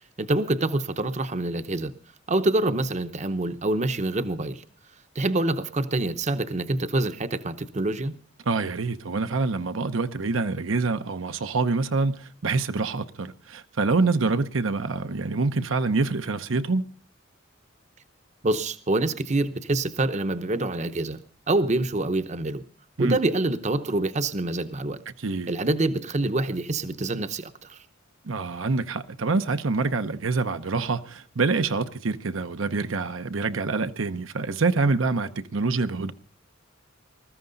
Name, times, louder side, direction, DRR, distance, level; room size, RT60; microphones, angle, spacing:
voice 1, 0.2-1.9 2.3-4.6 5.1-8.1 18.4-21.2 21.5-22.6 23.0-25.0 25.5-27.8, right 2 dB, 35° right, 0.8 m, -26 dB
voice 2, 8.5-16.9 23.0-23.1 25.1-25.5 28.2-36.1, right 3 dB, 75° right, 0.8 m, -26 dB
20.5 x 14.0 x 3.9 m
head